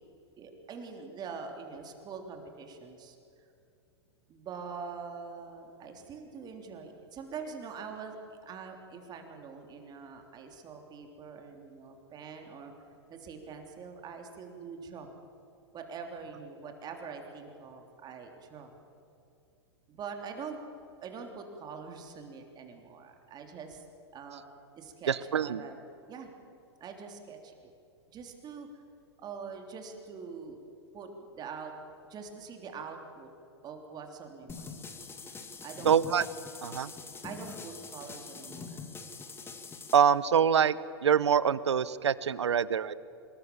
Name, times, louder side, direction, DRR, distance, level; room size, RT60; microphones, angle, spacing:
voice 1, 0.4-3.2 4.3-12.7 13.1-15.1 15.7-18.7 19.9-20.6 21.0-23.8 24.1-24.4 24.8-25.8 26.1-26.3 26.8-27.7 28.1-28.7 29.2-30.6 30.9-31.7 32.1-33.3 33.6-34.8 35.6-36.0 37.2-38.8, right 5 dB, 30° right, 4 dB, 3.4 m, -44 dB
voice 2, 25.1-25.6 35.8-36.2 36.6-36.9 39.9-40.8 41.0-43.0, right 8 dB, 80° right, 18 dB, 1.0 m, -25 dB
sound 1, 34.5-40.0, left 4 dB, 15° left, 2.1 m, -44 dB
25.5 x 21.5 x 7.2 m, 2.6 s
hypercardioid pair, 110°, 14 cm